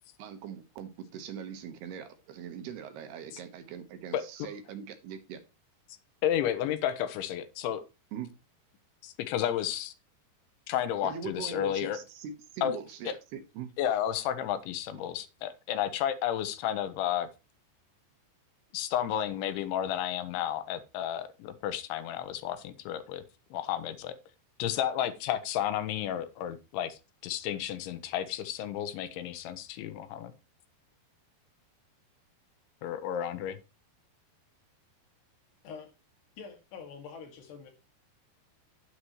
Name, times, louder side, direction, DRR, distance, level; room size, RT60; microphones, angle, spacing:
voice 1, 0.2-5.4 8.1-8.3 11.0-13.7, right 8 dB, 70° right, 3.0 m, -41 dB
voice 2, 6.2-7.8 9.0-9.9 10.7-12.0 12.6-12.8 13.1-13.2 13.8-17.3 18.7-23.2 23.5-24.2 24.6-30.3 32.8-33.6, left 11 dB, 85° left, 3.4 m, -32 dB
voice 3, 36.4-37.7, left 6 dB, 70° left, 4.1 m, -45 dB
9.8 x 9.4 x 3.0 m
omnidirectional pair, 5.2 m